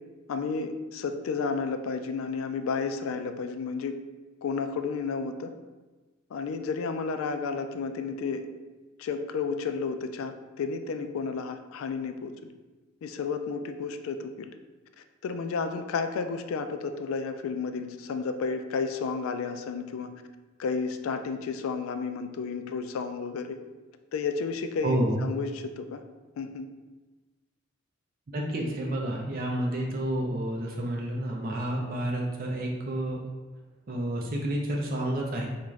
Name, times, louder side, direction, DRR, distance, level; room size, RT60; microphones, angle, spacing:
voice 1, 0.3-4.0 4.4-5.5 6.3-8.5 9.0-12.5 13.0-14.6 15.2-20.1 20.6-23.6 24.1-26.0 26.4-26.7, left 5 dB, 80° left, 8 dB, 0.3 m, -32 dB
voice 2, 24.8-25.2 28.3-33.2 33.9-35.5, right 1 dB, 45° right, -1 dB, 0.5 m, -30 dB
3.5 x 2.5 x 3.1 m, 1.3 s
head